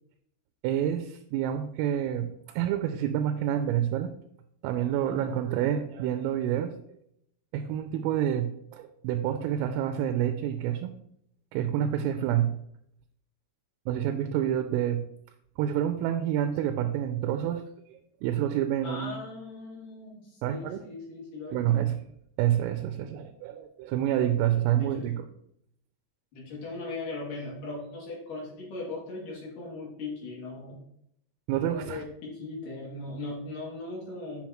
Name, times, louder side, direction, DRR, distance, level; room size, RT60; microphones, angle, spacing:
voice 1, 0.6-4.1 4.6-6.7 7.5-10.9 11.5-12.6 13.9-15.1 15.6-19.2 20.4-20.8 21.5-22.0 22.4-25.3 31.5-32.0, right 10 dB, 85° right, 7 dB, 3.2 m, -28 dB
voice 2, 18.8-22.0 24.8-25.1 26.3-30.8 31.7-34.5, left 2 dB, 50° left, -3 dB, 3.3 m, -39 dB
8.0 x 7.1 x 3.0 m, 0.72 s
omnidirectional pair, 5.9 m